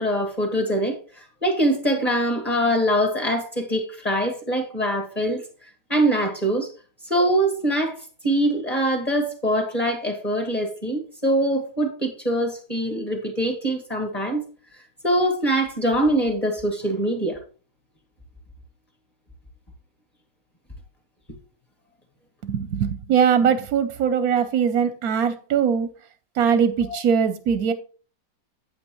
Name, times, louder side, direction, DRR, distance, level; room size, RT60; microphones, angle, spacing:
voice 1, 0.0-6.7 7.0-14.4 15.0-17.4 26.8-27.0, right 1 dB, 20° left, 1.7 m, -23 dB
voice 2, 22.5-25.9 26.4-27.7, right 7 dB, 65° right, 1.0 m, -21 dB
8.7 x 8.6 x 3.0 m
omnidirectional pair, 2.0 m